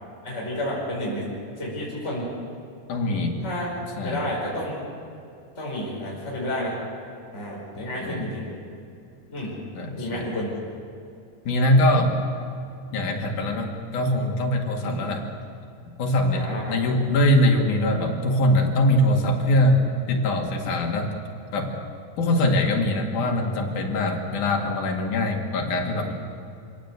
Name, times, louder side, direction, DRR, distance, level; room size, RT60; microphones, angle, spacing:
voice 1, 0.2-1.3 1.6-2.3 3.4-3.7 4.0-4.8 5.6-6.8 7.3-8.5 9.3-9.6 10.0-10.5 14.8-14.9 16.3-16.7, left 1 dB, 20° left, -5 dB, 5.5 m, -30 dB
voice 2, 2.9-3.4 4.0-4.2 8.0-8.3 9.8-10.3 11.5-12.2 12.9-15.2 16.0-21.1 21.5-21.8 22.2-26.1, left 1 dB, 75° left, 2 dB, 3.8 m, -22 dB
25.0 x 17.0 x 8.2 m, 2.6 s
omnidirectional pair, 3.6 m